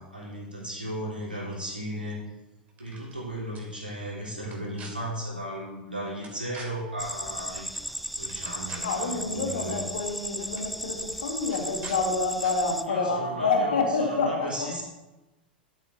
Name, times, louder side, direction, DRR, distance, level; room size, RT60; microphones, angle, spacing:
voice 1, 0.0-2.2 2.8-7.7 8.2-9.8 12.9-14.8, equal, 90° right, -6 dB, 3.4 m, -35 dB
sound 1, 2.7-3.2 3.5-3.6 4.4-4.9 6.2-6.7 7.7-7.9 8.2-9.0 10.0-10.1 10.4-10.7 11.5-12.0 12.4-12.5, right 4 dB, 30° right, 2.7 m, -45 dB
sound 2, 7.0-12.8, equal, ahead, 0.4 m, -36 dB
voice 2, 8.8-14.7, left 4 dB, 70° left, 3 dB, 1.7 m, -28 dB
13.0 x 8.2 x 2.7 m, 1.0 s
figure-of-eight pair, 90°, 5 cm